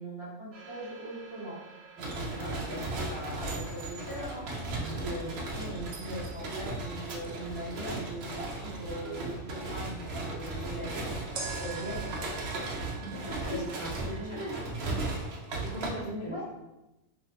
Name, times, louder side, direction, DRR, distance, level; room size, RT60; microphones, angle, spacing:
voice 1, 0.0-12.4 13.4-13.6 14.0-14.4 16.0-16.4, right 1 dB, 10° left, -9 dB, 1.1 m, -40 dB
sound 1, 0.5-8.5 11.3-14.7, right 5 dB, 80° right, 1.1 m, -48 dB
sound 2, 2.0-15.9, right 2 dB, 65° right, 0.7 m, -36 dB
voice 2, 2.3-3.0 4.7-5.0 13.0-13.9 14.3-15.3 15.6-16.4, equal, 35° left, -6 dB, 1.0 m, -40 dB
2.6 x 2.2 x 3.4 m, 0.95 s
omnidirectional pair, 1.4 m